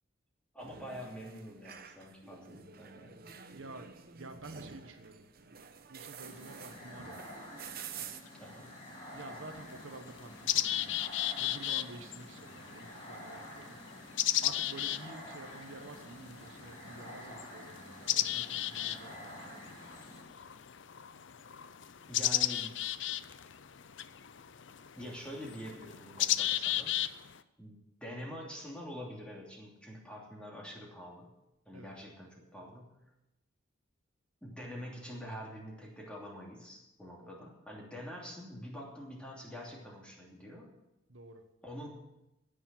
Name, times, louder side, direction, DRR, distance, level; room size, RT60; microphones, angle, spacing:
voice 1, 0.5-3.4 8.4-8.8 22.1-22.8 25.0-27.0 27.6-31.3 31.6-32.9 34.4-40.7 41.6-41.9, equal, 5° left, -2 dB, 2.9 m, -46 dB
sound 1, 0.6-8.2, right 7 dB, 50° right, 0.9 m, -49 dB
voice 2, 3.5-3.9 4.1-5.3 5.9-7.2 9.1-11.0 11.4-13.8 14.4-19.7 31.7-31.9 37.2-37.4 41.1-41.4, right 2 dB, 75° right, 7 dB, 1.2 m, -49 dB
sound 2, 6.2-20.2, equal, 30° left, 4.5 m, -49 dB
sound 3, 8.3-8.4 9.2-9.3 9.7-27.4, left 12 dB, 65° left, 0.5 m, -35 dB
17.0 x 6.7 x 7.6 m, 0.93 s
head